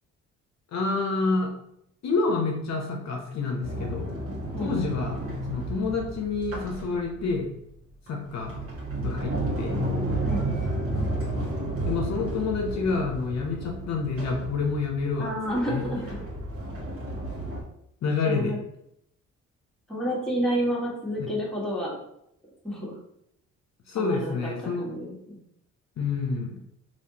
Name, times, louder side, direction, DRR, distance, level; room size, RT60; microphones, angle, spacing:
voice 1, 0.7-1.5 2.0-4.1 4.6-5.2 5.5-7.5 8.1-8.6 9.0-9.8 11.8-15.3 15.7-15.9 18.0-18.6 21.2-21.3 23.9-24.9 26.0-26.6, left 4 dB, 60° left, 1 dB, 0.7 m, -28 dB
Sliding door, 3.6-7.4 8.1-17.6, right 1 dB, 50° right, 1.3 m, -32 dB
voice 2, 10.3-10.7 15.2-16.2 18.3-18.6 19.9-22.0 22.6-23.0 23.9-25.4, equal, ahead, -5 dB, 1.3 m, -30 dB
3.4 x 2.7 x 2.8 m, 0.76 s
cardioid pair, 90°, 30 cm